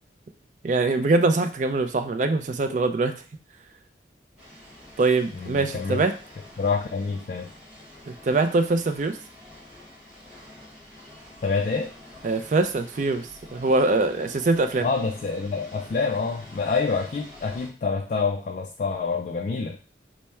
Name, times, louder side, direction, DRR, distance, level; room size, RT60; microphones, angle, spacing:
voice 1, 0.6-3.1 5.0-6.1 8.1-9.2 12.2-14.9, right 3 dB, 45° right, 8 dB, 0.4 m, -23 dB
sound 1, 4.4-17.7, left 1 dB, 5° right, 1.5 m, -47 dB
voice 2, 5.4-6.0 6.6-7.5 11.4-11.9 14.8-19.8, left 4 dB, 45° left, 3 dB, 0.3 m, -27 dB
3.4 x 2.1 x 4.2 m, 0.39 s
head